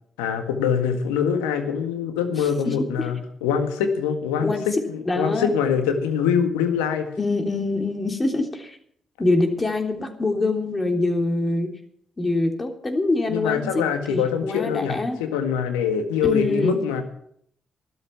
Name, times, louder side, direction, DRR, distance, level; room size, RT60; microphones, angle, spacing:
voice 1, 0.2-7.1 13.3-17.0, left 7 dB, 85° left, 7 dB, 1.7 m, -24 dB
voice 2, 2.6-3.1 4.4-4.7 5.0-5.5 7.2-8.8 9.2-11.7 12.2-15.2 16.2-16.8, left 2 dB, 30° left, 4 dB, 3.4 m, -24 dB
13.5 x 12.5 x 5.9 m, 0.66 s
hypercardioid pair, 45°, 0 cm